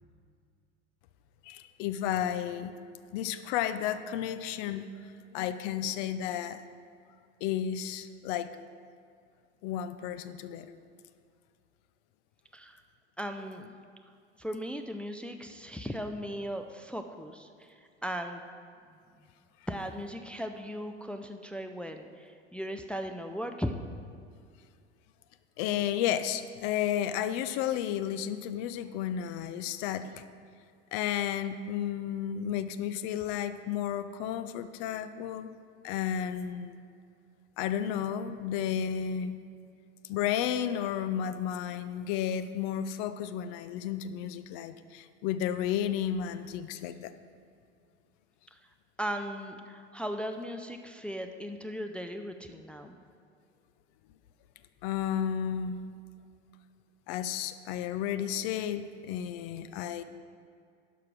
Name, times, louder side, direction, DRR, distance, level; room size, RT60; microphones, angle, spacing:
voice 1, 1.4-2.7 3.1-6.6 7.4-8.5 9.6-10.8 25.6-30.2 30.9-35.5 35.8-36.8 37.6-39.4 40.1-47.1 54.8-55.8 57.1-60.0, left 9 dB, 50° left, 12 dB, 0.6 m, -32 dB
voice 2, 13.2-13.8 14.4-18.4 19.7-23.8 48.5-48.6 49.0-53.0, equal, 5° left, 5 dB, 0.4 m, -37 dB
11.5 x 4.9 x 6.0 m, 2.3 s
figure-of-eight pair, 80°, 35 cm